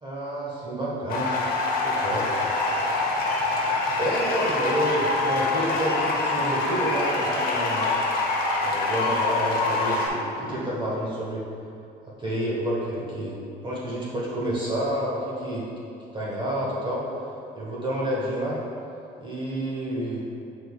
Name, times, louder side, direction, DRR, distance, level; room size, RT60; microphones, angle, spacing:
voice 1, 0.0-1.3 1.8-2.3 4.0-7.9 8.6-11.4 12.2-13.4 13.6-15.7 16.1-17.0 17.5-18.6 19.2-20.2, right 1 dB, 30° right, -6 dB, 1.5 m, -29 dB
sound 1, 1.1-10.1, left 3 dB, 60° left, 1.1 m, -25 dB
9.0 x 4.4 x 2.4 m, 2.6 s
cardioid pair, 110°, 17 cm